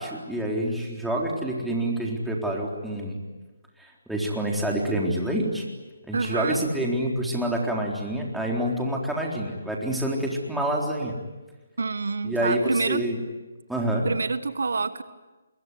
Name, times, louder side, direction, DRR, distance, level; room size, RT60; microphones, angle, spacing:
voice 1, 0.0-3.2 3.8-5.6 6.1-11.2 12.2-13.2 13.7-14.1, right 1 dB, ahead, -2 dB, 3.9 m, -27 dB
voice 2, 6.1-6.6 11.8-13.1 14.0-15.0, right 4 dB, 75° right, 13 dB, 1.4 m, -27 dB
26.0 x 22.0 x 9.6 m, 1.2 s
hypercardioid pair, 155°, 0 cm